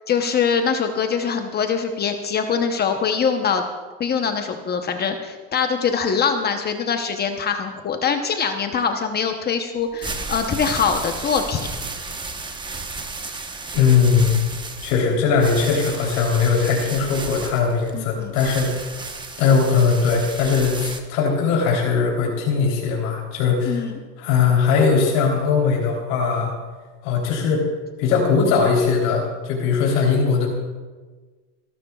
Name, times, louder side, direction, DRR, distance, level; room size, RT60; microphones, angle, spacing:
voice 1, 0.1-3.6 4.0-11.7 17.9-18.3 23.7-24.0, left 6 dB, 25° left, 6 dB, 0.9 m, -23 dB
sound 1, 9.8-21.0, right 3 dB, 10° right, 1.0 m, -33 dB
voice 2, 13.7-14.4 14.8-18.9 19.4-23.9 24.2-26.5 27.0-27.6 28.0-30.5, left 5 dB, 65° left, -1 dB, 3.5 m, -20 dB
29.5 x 12.5 x 2.4 m, 1.4 s
supercardioid pair, 130°, 36 cm